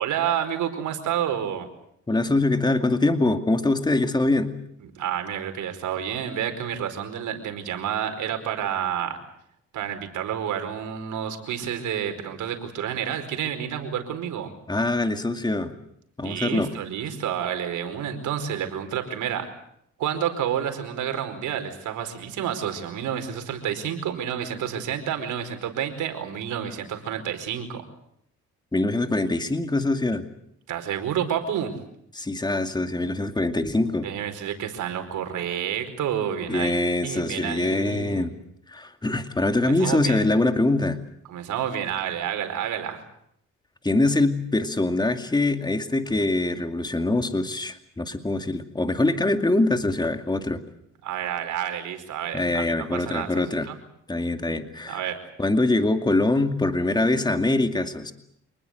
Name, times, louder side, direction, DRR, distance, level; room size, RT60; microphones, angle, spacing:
voice 1, 0.0-1.7 4.9-9.2 9.7-14.5 16.2-19.5 20.0-27.8 30.7-31.7 34.0-36.7 37.0-38.3 39.6-40.2 41.3-43.0 51.0-53.7 54.9-55.2, right 9 dB, 80° right, 7 dB, 4.8 m, -29 dB
voice 2, 2.1-4.6 14.7-15.7 16.2-16.7 28.7-30.2 32.1-34.1 36.5-38.3 38.7-41.0 43.8-50.6 52.3-53.7 54.1-55.0 55.4-58.1, left 2 dB, 15° left, 7 dB, 2.4 m, -23 dB
27.0 x 20.0 x 8.0 m, 0.72 s
cardioid pair, 90°, 30 cm